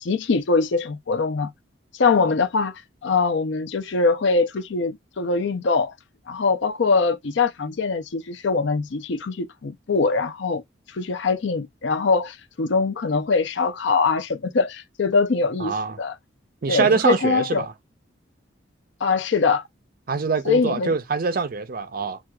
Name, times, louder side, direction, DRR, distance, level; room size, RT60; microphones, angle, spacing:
voice 1, 0.0-1.5 1.9-5.9 6.3-10.6 10.9-16.1 16.7-17.6 19.0-19.6 20.5-20.9, left 4 dB, 65° left, 0.5 m, -22 dB
voice 2, 15.6-16.0 16.6-17.7 20.1-22.2, right 4 dB, 45° right, 0.4 m, -24 dB
6.0 x 2.3 x 2.3 m
head